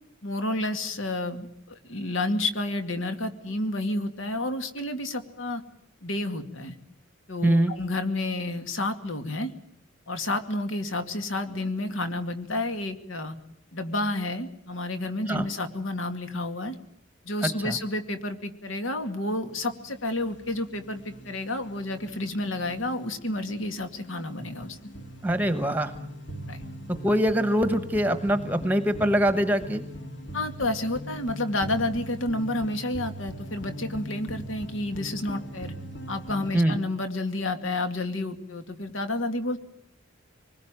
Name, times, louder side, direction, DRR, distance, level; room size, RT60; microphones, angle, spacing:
voice 1, 0.2-5.6 6.0-6.7 7.3-9.5 10.1-13.3 13.7-16.8 17.2-24.9 26.5-26.6 30.3-35.7 36.1-39.6, left 2 dB, 80° left, 8 dB, 2.3 m, -30 dB
voice 2, 7.4-7.7 15.3-15.5 17.4-17.8 25.2-25.9 26.9-29.8 36.5-36.8, right 1 dB, 10° right, 9 dB, 1.1 m, -23 dB
sound 1, 19.4-36.5, equal, 60° left, 2.5 m, -41 dB
26.5 x 20.5 x 9.0 m, 0.68 s
head